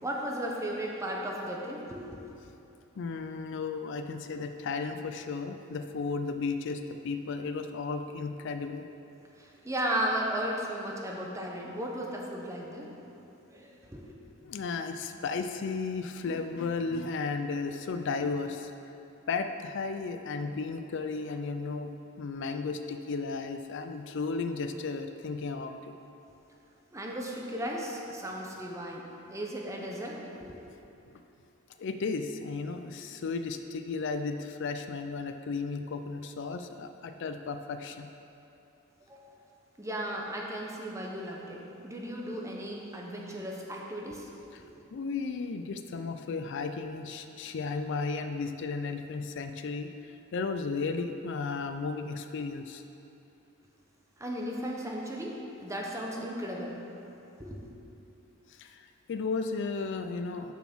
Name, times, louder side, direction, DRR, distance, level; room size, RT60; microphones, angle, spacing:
voice 1, 0.0-2.2 9.4-12.9 13.5-14.1 26.9-29.0 29.3-30.6 39.1-39.2 39.8-44.3 44.6-44.7 54.2-56.8 57.4-57.7, equal, 15° right, -1 dB, 1.0 m, -35 dB
voice 2, 3.0-8.8 14.4-18.7 19.3-21.9 22.2-25.9 31.8-38.1 44.5-44.6 44.9-52.8 58.5-60.5, left 4 dB, 60° left, 8 dB, 0.4 m, -34 dB
7.0 x 6.1 x 6.1 m, 2.8 s
head